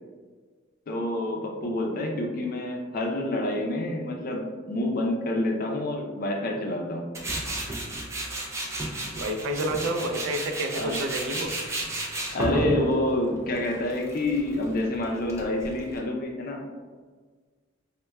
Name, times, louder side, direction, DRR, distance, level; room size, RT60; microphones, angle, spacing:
voice 1, 0.9-7.1 10.7-11.1 12.3-16.6, left 1 dB, 45° left, 1 dB, 0.4 m, -28 dB
Tools, 7.1-16.0, right 1 dB, 15° right, 0.4 m, -33 dB
voice 2, 9.2-11.5, right 1 dB, 90° right, 5 dB, 0.3 m, -29 dB
4.0 x 2.1 x 2.2 m, 1.5 s
head